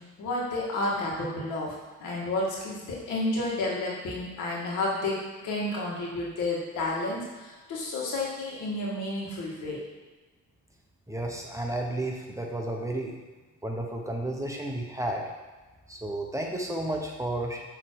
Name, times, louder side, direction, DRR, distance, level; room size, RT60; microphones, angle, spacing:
voice 1, 0.0-9.8, left 2 dB, 85° left, -4 dB, 1.9 m, -31 dB
voice 2, 11.1-13.2 13.6-15.2 15.9-17.6, right 1 dB, 10° right, 0 dB, 1.0 m, -32 dB
7.1 x 3.4 x 4.7 m, 1.3 s
cardioid pair, 90°, 30 cm